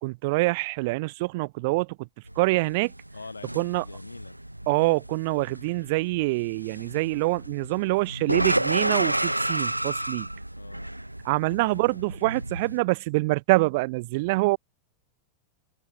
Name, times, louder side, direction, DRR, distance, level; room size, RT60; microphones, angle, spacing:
voice 1, 0.0-2.1 2.4-2.9 3.5-3.8 4.7-10.3 11.2-14.6, right 24 dB, 50° right, 2.7 m, -25 dB
sound 1, 2.3-12.8, right 1 dB, 85° right, 0.9 m, -31 dB
voice 2, 3.1-4.4 10.6-11.0 11.6-12.0, left 4 dB, 80° left, 7.4 m, -44 dB
figure-of-eight pair, 90°, 0 cm